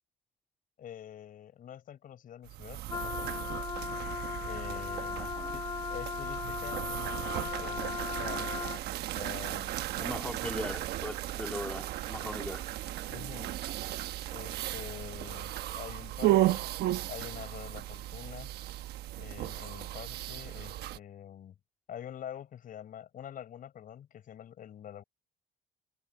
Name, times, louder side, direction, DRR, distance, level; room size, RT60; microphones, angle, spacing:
voice 1, 0.8-3.6 4.4-6.9 7.3-8.7 9.2-9.7 13.1-13.6 14.3-16.7 17.1-18.5 19.2-21.6 21.9-25.0, left 10 dB, 55° left, 5.3 m, -46 dB
sound 1, 2.4-21.0, right 15 dB, 75° right, 1.1 m, -35 dB
Wind instrument woodwind instrument, 2.9-8.9, left 6 dB, 25° left, 0.4 m, -37 dB
voice 2, 5.1-5.5 10.0-12.7, left 1 dB, 5° left, 2.1 m, -39 dB
cardioid pair, 110°, 17 cm